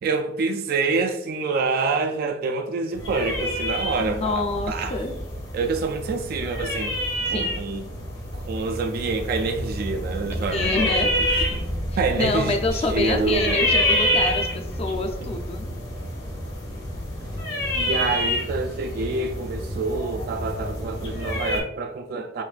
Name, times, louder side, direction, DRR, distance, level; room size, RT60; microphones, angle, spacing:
voice 1, 0.0-5.0 5.5-6.9 7.3-7.8 8.3-11.6 12.0-13.6 15.2-15.3 17.7-22.4, right 4 dB, 55° right, 0.3 m, -27 dB
sound 1, 2.9-21.6, equal, 70° left, 1.3 m, -28 dB
voice 2, 4.0-5.1 7.3-7.6 10.5-11.1 12.2-15.6, left 2 dB, 35° left, 0.5 m, -26 dB
5.6 x 2.6 x 2.4 m
head